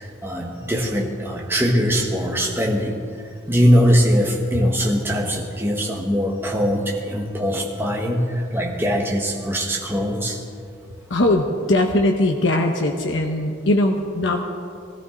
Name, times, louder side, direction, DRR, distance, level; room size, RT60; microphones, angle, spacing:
voice 1, 0.0-3.0 3.5-10.4, equal, 10° right, -1 dB, 1.6 m, -21 dB
voice 2, 11.1-14.4, left 1 dB, 85° left, 2 dB, 1.0 m, -20 dB
20.0 x 14.0 x 3.9 m, 2.3 s
head